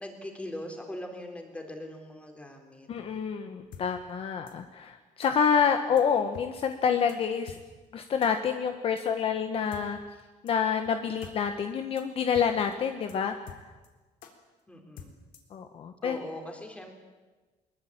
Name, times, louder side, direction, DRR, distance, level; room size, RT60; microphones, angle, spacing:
voice 1, 0.0-2.9 14.7-15.2 16.0-17.0, left 1 dB, 10° left, 3 dB, 3.9 m, -41 dB
voice 2, 2.9-7.6 7.9-10.0 10.4-13.3 15.5-16.2, left 7 dB, 40° left, 7 dB, 1.3 m, -27 dB
sound 1, 3.7-3.8 4.5-4.6 5.2-5.3 6.0-6.1 6.3-6.5 6.7-6.8 7.1-7.2 7.5-7.6 8.2-8.3 9.0-9.1 9.7-9.8 10.5-10.6 10.8-10.9 11.2-11.3 11.6-11.7 12.0-12.1 12.3-12.5 12.7-12.8 13.1-13.2 13.5-13.9 14.2-14.3 15.0-15.5, left 8 dB, 75° left, 3.7 m, -46 dB
22.0 x 22.0 x 8.8 m, 1.3 s
cardioid pair, 165°, 14 cm